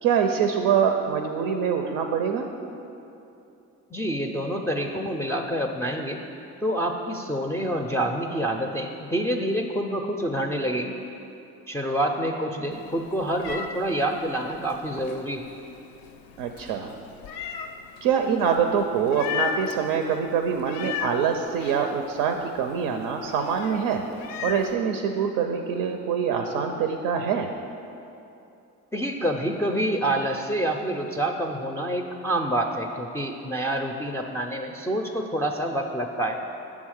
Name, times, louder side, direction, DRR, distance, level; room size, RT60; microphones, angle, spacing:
voice 1, 0.0-2.5 16.4-16.9 18.0-24.0 24.4-27.5, right 7 dB, 85° right, 5 dB, 0.5 m, -25 dB
voice 2, 3.9-6.2 6.6-11.0 11.7-15.5 28.9-36.4, right 1 dB, 10° left, 1 dB, 0.3 m, -27 dB
Meow, 12.7-24.7, left 8 dB, 80° left, 0.5 m, -37 dB
7.1 x 3.6 x 6.3 m, 2.8 s
supercardioid pair, 75°, 35 cm